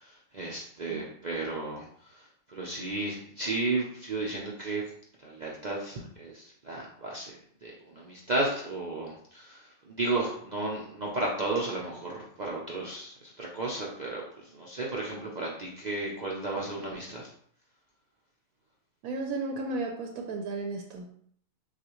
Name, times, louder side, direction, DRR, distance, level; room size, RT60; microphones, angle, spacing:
voice 1, 0.0-4.8 5.2-7.3 7.6-17.3, right 2 dB, 55° right, -3 dB, 0.5 m, -34 dB
voice 2, 19.0-21.1, right 3 dB, 80° right, 2 dB, 1.0 m, -34 dB
6.4 x 2.4 x 3.0 m, 0.63 s
omnidirectional pair, 1.5 m